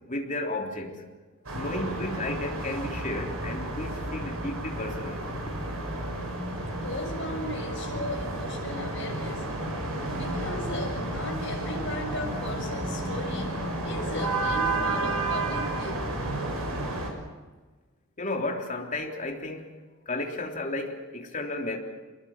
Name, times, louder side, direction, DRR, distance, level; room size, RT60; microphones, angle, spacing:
voice 1, 0.1-1.0 1.5-5.3 18.2-19.8 20.1-21.8, left 2 dB, 35° left, 1 dB, 3.5 m, -33 dB
sound 1, 1.4-17.1, right 2 dB, 85° right, 6.4 m, -31 dB
voice 2, 6.6-9.5 10.1-16.1, left 1 dB, 60° left, 1 dB, 6.9 m, -37 dB
27.0 x 21.5 x 7.4 m, 1.3 s
head